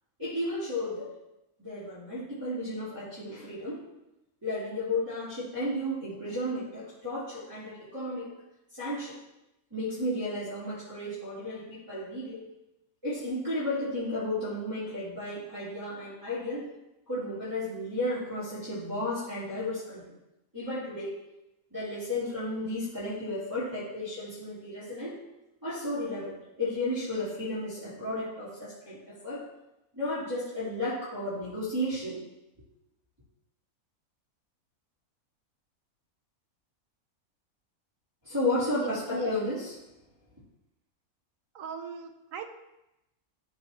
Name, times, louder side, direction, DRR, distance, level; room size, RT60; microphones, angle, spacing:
voice 1, 0.2-1.2 1.6-3.8 4.4-8.3 8.7-9.2 9.7-12.5 13.0-16.7 17.1-20.1 20.5-21.1 21.7-25.2 25.6-29.5 29.9-32.2 38.2-39.8, left 1 dB, 15° right, -16 dB, 3.0 m, -33 dB
voice 2, 41.5-42.5, right 7 dB, 65° right, 6 dB, 1.1 m, -38 dB
13.0 x 4.7 x 2.8 m, 0.91 s
omnidirectional pair, 1.5 m